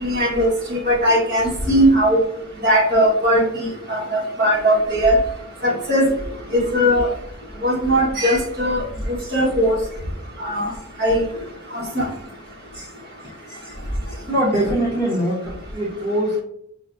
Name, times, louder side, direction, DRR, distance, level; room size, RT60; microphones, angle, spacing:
voice 1, 0.0-2.2 2.6-4.0 4.4-5.2 5.6-6.1 6.5-7.1 7.6-8.8 9.3-9.8 10.4-10.7 11.0-11.2 11.7-12.0, equal, 55° right, 1.4 m, -18 dB
voice 2, 14.3-16.4, right 1 dB, 15° right, 1.2 m, -22 dB
6.1 x 2.2 x 2.6 m
head